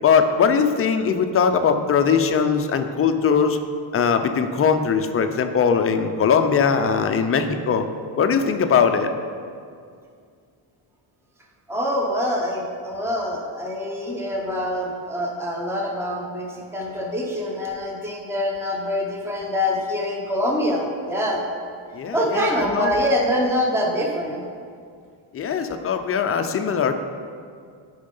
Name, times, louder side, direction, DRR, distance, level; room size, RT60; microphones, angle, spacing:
voice 1, 0.0-3.6 3.9-7.9 8.2-9.1 21.9-22.9 25.3-27.0, left 6 dB, 30° left, 7 dB, 0.4 m, -20 dB
voice 2, 11.7-21.4 22.1-24.4, left 1 dB, 5° right, 0 dB, 0.7 m, -25 dB
8.7 x 5.5 x 5.3 m, 2.2 s
cardioid pair, 170°, 48 cm